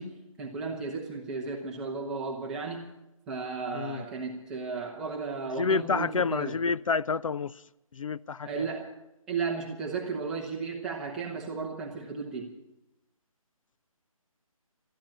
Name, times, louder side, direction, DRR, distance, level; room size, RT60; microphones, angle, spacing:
voice 1, 0.0-2.9 3.3-6.5 8.4-8.9 9.3-12.5, right 4 dB, 5° right, 0.7 m, -34 dB
voice 2, 3.7-4.1 5.6-7.6 7.9-8.7, left 5 dB, 65° left, 0.4 m, -29 dB
13.0 x 11.5 x 8.5 m
hypercardioid pair, 170°, 18 cm